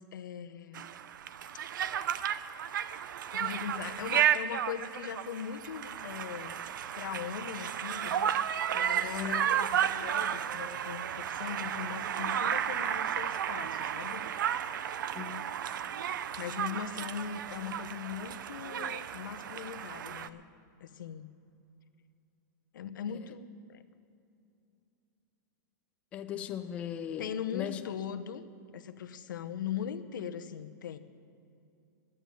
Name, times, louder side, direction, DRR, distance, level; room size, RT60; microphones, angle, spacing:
voice 1, 0.1-0.9 3.3-6.6 7.0-14.3 16.4-20.4 20.8-21.3 22.7-23.8 27.2-28.5 28.7-31.0, left 8 dB, 85° left, 9 dB, 0.9 m, -40 dB
Conversation, 0.7-20.3, right 9 dB, 85° right, 0.6 m, -33 dB
voice 2, 9.1-9.5 15.1-15.4 26.1-27.8, left 9 dB, 10° left, 7 dB, 0.4 m, -38 dB
12.0 x 9.0 x 9.1 m, 2.7 s
supercardioid pair, 175°, 10 cm